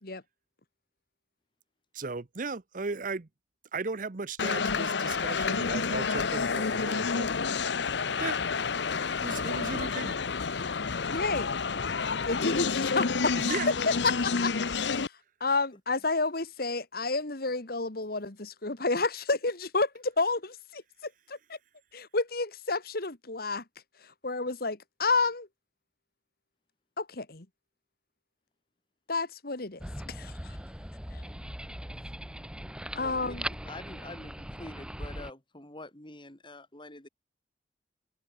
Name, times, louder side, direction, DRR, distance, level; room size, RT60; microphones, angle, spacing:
voice 1, 1.9-3.3 3.7-7.3 8.2-8.4 9.2-10.2 13.4-13.7, right 4 dB, 50° right, 0.8 m, -36 dB
sound 1, 4.4-15.1, left 5 dB, 85° left, 0.8 m, -29 dB
voice 2, 11.1-11.5 12.3-13.3 14.0-15.1 15.4-21.6 21.9-23.6 24.2-25.5 27.0-27.5 29.1-29.8 30.1-30.6 31.1-31.2 33.0-33.4, left 3 dB, 60° left, 2.0 m, -30 dB
sound 2, 29.8-35.3, equal, 5° right, 4.8 m, -40 dB
voice 3, 32.9-37.1, left 2 dB, 30° left, 3.6 m, -46 dB
head